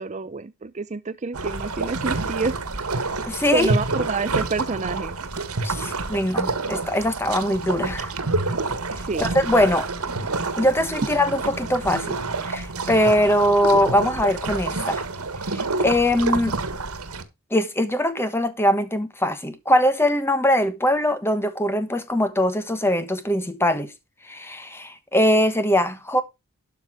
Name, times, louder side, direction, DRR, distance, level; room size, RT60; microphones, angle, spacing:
voice 1, 0.0-2.6 2.9-3.1 3.5-5.2 9.1-9.3, right 4 dB, 30° right, 0.5 m, -27 dB
sound 1, 1.3-17.2, right 3 dB, 80° right, 1.6 m, -28 dB
voice 2, 3.3-3.7 5.6-8.1 9.2-9.9 10.6-15.0 15.5-16.6 17.5-23.9 24.3-26.2, left 1 dB, 10° left, 1.2 m, -22 dB
12.5 x 5.8 x 4.9 m
head